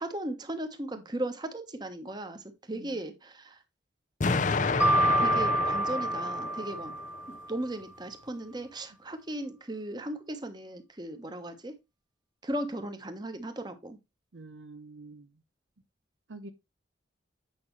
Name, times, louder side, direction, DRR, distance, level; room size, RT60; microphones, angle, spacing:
voice 1, 0.0-3.6 5.2-6.9 7.3-11.7 12.4-14.0, right 1 dB, 25° right, 1.2 m, -37 dB
Explosion, 4.2-7.2, left 4 dB, 45° left, 0.6 m, -30 dB
Mallet percussion, 4.8-7.6, right 2 dB, 5° right, 0.3 m, -28 dB
voice 2, 14.3-15.3 16.3-16.5, right 2 dB, 85° right, 0.8 m, -46 dB
8.7 x 5.7 x 3.2 m
head